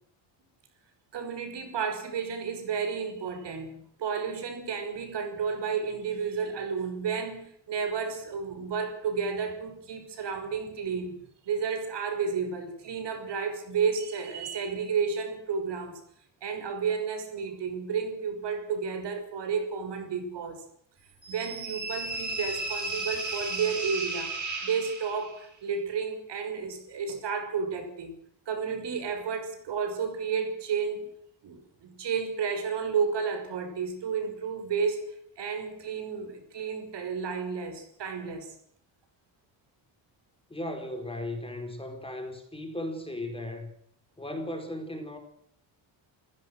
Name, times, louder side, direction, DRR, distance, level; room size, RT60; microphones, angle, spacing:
voice 1, 1.1-11.2 11.4-16.0 16.4-20.6 21.3-24.3 24.6-28.1 28.5-31.1 31.4-35.1 35.4-38.6, right 6 dB, 60° right, 6.0 m, -32 dB
sound 1, 21.2-25.4, right 2 dB, 40° right, 7.7 m, -34 dB
voice 2, 40.5-43.7 44.2-45.2, left 1 dB, 10° left, 4.8 m, -36 dB
29.0 x 16.0 x 6.4 m
cardioid pair, 130°, 46 cm